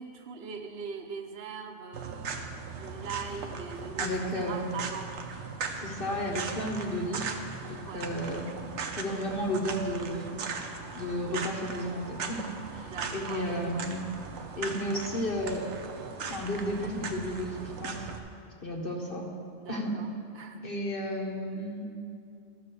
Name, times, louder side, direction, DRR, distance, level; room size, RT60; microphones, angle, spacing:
voice 1, 0.0-2.4 2.8-5.1 7.9-8.1 12.8-13.9 19.6-20.1 20.4-20.6, right 5 dB, 65° right, 6 dB, 1.0 m, -41 dB
sound 1, 1.9-18.2, right 5 dB, 90° right, 1.1 m, -38 dB
voice 2, 4.0-4.7 5.7-7.2 7.7-8.5 9.0-10.3 10.9-14.0 14.6-15.6 16.2-18.1 18.6-19.2 19.7-19.9 20.6-21.9, equal, 55° left, -1 dB, 1.2 m, -33 dB
12.5 x 4.9 x 6.8 m, 2.4 s
omnidirectional pair, 1.1 m